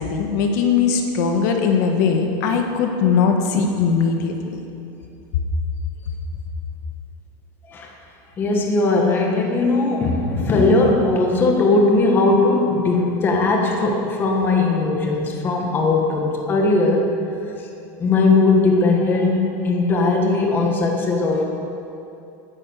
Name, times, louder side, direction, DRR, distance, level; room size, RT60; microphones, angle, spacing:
voice 1, 0.0-4.6, left 6 dB, 60° left, 4 dB, 1.5 m, -20 dB
voice 2, 8.4-17.1 17.6-17.7 18.0-21.4, left 3 dB, 20° left, 1 dB, 1.4 m, -19 dB
12.0 x 10.0 x 8.1 m, 2.8 s
supercardioid pair, 170°, 11 cm